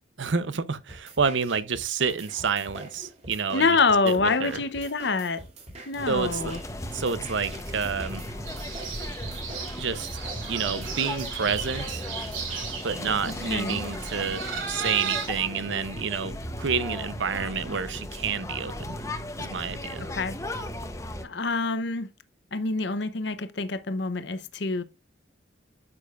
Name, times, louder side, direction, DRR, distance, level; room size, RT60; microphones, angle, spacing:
voice 1, 0.2-3.7 4.0-4.6 6.1-6.5 6.9-8.3 9.7-10.2 10.5-12.1 12.8-19.0 19.4-20.1, right 5 dB, 70° right, 0.7 m, -29 dB
sound 1, 0.9-12.9, right 1 dB, 35° right, 2.9 m, -45 dB
voice 2, 3.5-5.4 5.9-6.6 13.2-13.8 20.0-20.4 21.2-22.1 22.5-24.8, left 4 dB, 60° left, 0.8 m, -26 dB
sound 2, 6.0-21.3, left 1 dB, 15° left, 0.8 m, -36 dB
sound 3, 8.4-15.3, right 6 dB, 85° right, 2.8 m, -35 dB
9.5 x 7.0 x 2.4 m
head